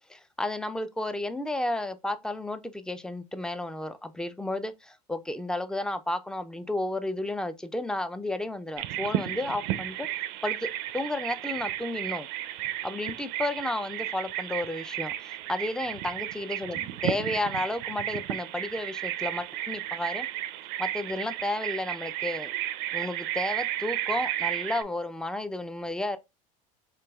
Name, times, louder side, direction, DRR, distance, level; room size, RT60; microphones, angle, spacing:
voice 1, 0.0-10.1 10.4-12.3 12.8-20.3 20.8-22.5 22.9-26.2, left 1 dB, 5° left, 0.4 m, -32 dB
Bird vocalization bird call bird song, 8.8-24.8, right 13 dB, 65° right, 0.5 m, -33 dB
4.5 x 3.0 x 2.3 m
supercardioid pair, 100°, 18 cm